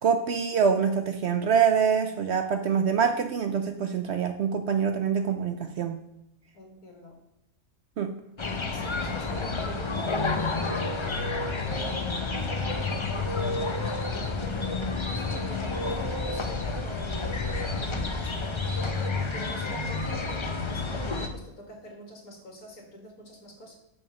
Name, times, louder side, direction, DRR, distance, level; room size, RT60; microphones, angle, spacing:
voice 1, 0.0-6.0 8.0-8.2, right 6 dB, 60° right, 7 dB, 0.7 m, -25 dB
voice 2, 6.5-7.2 8.4-12.5 13.1-18.7 19.0-23.8, equal, 80° left, 0 dB, 2.5 m, -45 dB
sound 1, 8.4-21.3, left 3 dB, 35° left, 0.4 m, -30 dB
5.6 x 5.3 x 6.7 m, 0.84 s
omnidirectional pair, 1.5 m